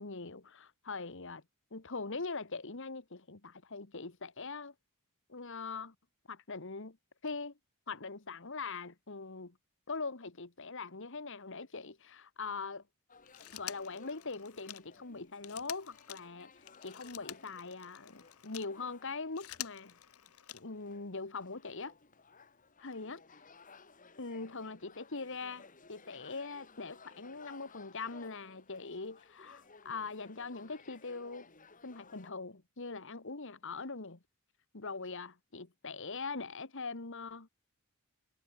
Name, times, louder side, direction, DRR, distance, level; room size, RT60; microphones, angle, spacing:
voice 1, 0.0-1.4 1.7-4.7 5.3-5.9 6.3-7.0 7.2-7.5 7.9-9.6 9.9-12.8 13.5-16.5 16.8-20.0 20.5-21.9 22.8-23.2 24.2-31.5 31.8-34.2 34.7-37.5, left 4 dB, 60° left, 1.6 m, -42 dB
sound 1, 13.1-32.3, left 4 dB, 35° left, 2.7 m, -59 dB
Telephone, 13.3-18.7 19.2-20.9 22.2-22.3, left 13 dB, 75° left, 0.9 m, -48 dB
head